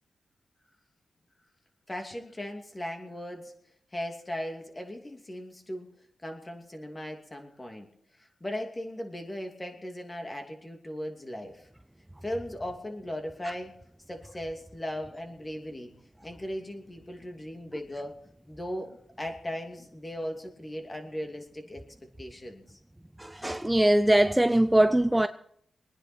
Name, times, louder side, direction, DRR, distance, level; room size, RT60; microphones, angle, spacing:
voice 1, 1.9-3.5 3.9-5.9 6.2-7.9 8.2-11.7 12.2-13.7 14.1-15.9 16.2-18.2 18.5-21.8 22.2-22.8, left 1 dB, 25° left, 2.7 m, -38 dB
voice 2, 23.2-25.3, right 1 dB, 10° right, 0.5 m, -22 dB
23.0 x 10.0 x 4.4 m
cardioid pair, 60°, 0 cm